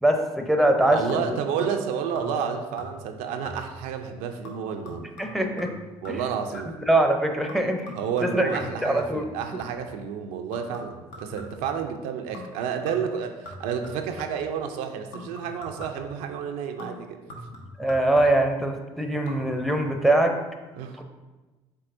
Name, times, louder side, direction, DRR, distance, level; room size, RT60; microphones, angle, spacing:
voice 1, 0.0-1.3 5.2-5.7 6.1-6.2 6.9-7.9 8.2-9.2 17.8-20.3 21.0-21.1, right 1 dB, ahead, 4 dB, 0.6 m, -23 dB
voice 2, 0.9-5.1 6.0-6.7 7.9-17.2 20.8-21.0, right 7 dB, 75° right, 5 dB, 0.4 m, -30 dB
sound 1, 1.1-1.9 2.2-2.5 2.8-3.2 3.5-3.9 4.4-6.9 7.5-10.0 10.5-11.8 12.3-12.6 12.9-14.5 15.1-16.2 16.8-18.6 19.1-19.4 19.7-19.8, left 1 dB, 75° left, 0.8 m, -43 dB
4.6 x 4.0 x 2.6 m, 1.2 s
hypercardioid pair, 65°, 14 cm